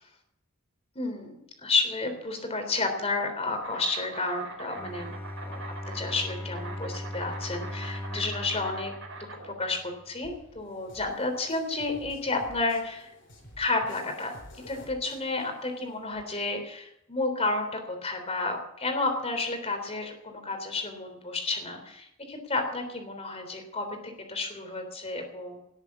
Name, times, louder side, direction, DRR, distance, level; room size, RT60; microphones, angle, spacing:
voice 1, 1.0-13.1 13.6-14.3 14.7-25.6, left 3 dB, 30° left, 5 dB, 3.5 m, -31 dB
Insect, 3.6-13.6, right 3 dB, 65° right, 5.3 m, -44 dB
Bowed string instrument, 4.7-10.0, left 1 dB, 10° left, 2.3 m, -39 dB
sound 1, 10.2-16.2, left 1 dB, 55° left, 4.1 m, -52 dB
18.5 x 8.2 x 8.5 m, 0.86 s
head